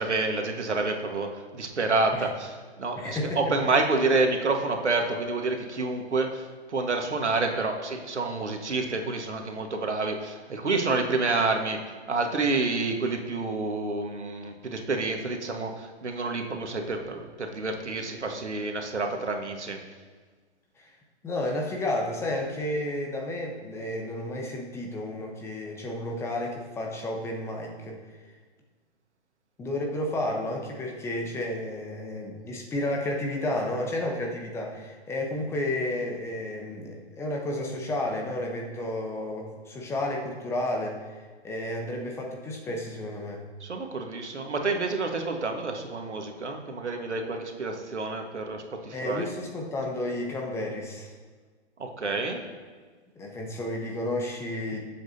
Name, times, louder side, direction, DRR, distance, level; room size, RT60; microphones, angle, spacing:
voice 1, 0.0-11.8 12.1-19.8 43.6-49.3 51.8-52.4, right 3 dB, 90° right, 3 dB, 1.6 m, -28 dB
voice 2, 2.9-3.4 3.7-3.8 20.8-20.9 21.2-28.0 29.6-43.4 48.9-51.1 53.2-54.8, left 1 dB, 10° left, 1 dB, 0.9 m, -32 dB
18.0 x 7.6 x 2.8 m, 1.5 s
hypercardioid pair, 140°, 34 cm